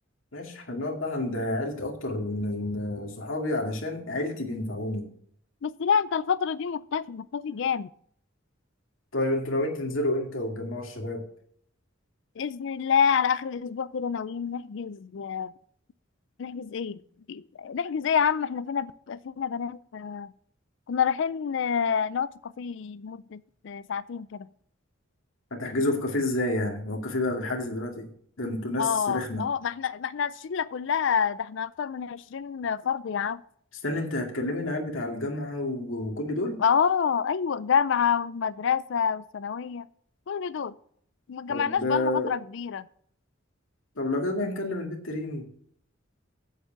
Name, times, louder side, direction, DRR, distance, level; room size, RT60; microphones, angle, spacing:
voice 1, 0.3-5.1 9.1-11.3 25.5-28.1 28.4-29.5 33.8-36.6 41.5-42.3 44.0-45.5, left 2 dB, 80° left, 2.2 m, -29 dB
voice 2, 5.6-7.9 12.4-15.5 16.4-17.0 17.3-20.3 20.9-24.5 28.8-33.4 36.6-39.9 40.3-40.7 41.3-42.9, left 7 dB, 65° left, 0.4 m, -28 dB
8.3 x 8.2 x 5.7 m
head